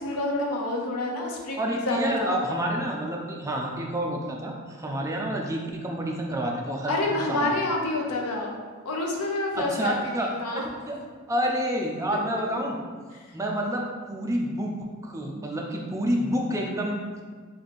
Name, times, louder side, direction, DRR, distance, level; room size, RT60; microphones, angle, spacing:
voice 1, 0.0-2.3 6.9-8.5 8.8-10.6 13.1-13.3, left 2 dB, 85° left, 0 dB, 0.6 m, -28 dB
voice 2, 1.6-7.0 7.3-7.5 9.6-10.3 10.5-10.9 11.3-12.8 13.3-17.0, equal, 15° right, -1 dB, 0.4 m, -29 dB
3.1 x 2.6 x 4.1 m, 1.5 s
head